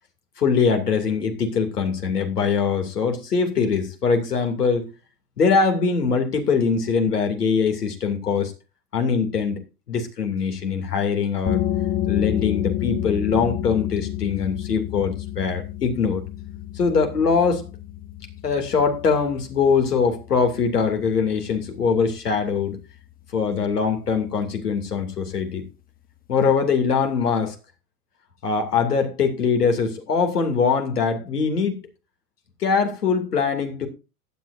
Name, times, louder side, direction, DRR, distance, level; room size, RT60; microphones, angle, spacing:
voice 1, 0.4-4.9 5.4-8.5 8.9-9.6 9.9-11.6 12.1-16.2 16.7-17.7 18.4-22.8 23.3-25.6 26.3-27.6 28.4-31.8 32.6-33.9, left 5 dB, 85° left, 2.8 m, -22 dB
sound 1, 11.5-22.8, left 13 dB, 20° left, 0.8 m, -30 dB
15.5 x 10.5 x 2.6 m
hypercardioid pair, 100°, 45 cm